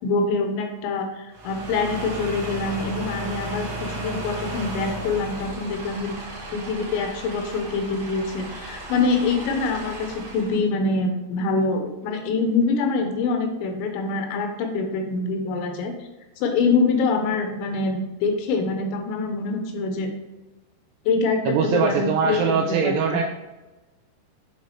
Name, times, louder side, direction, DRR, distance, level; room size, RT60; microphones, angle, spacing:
voice 1, 0.0-6.1 6.5-15.9 16.4-20.1 21.1-23.2, left 3 dB, 85° left, 4 dB, 3.2 m, -25 dB
sound 1, 1.3-10.6, right 1 dB, 65° right, 1.8 m, -35 dB
voice 2, 21.5-23.2, right 6 dB, 85° right, 2 dB, 2.4 m, -22 dB
7.6 x 4.0 x 3.2 m, 1.1 s
omnidirectional pair, 5.2 m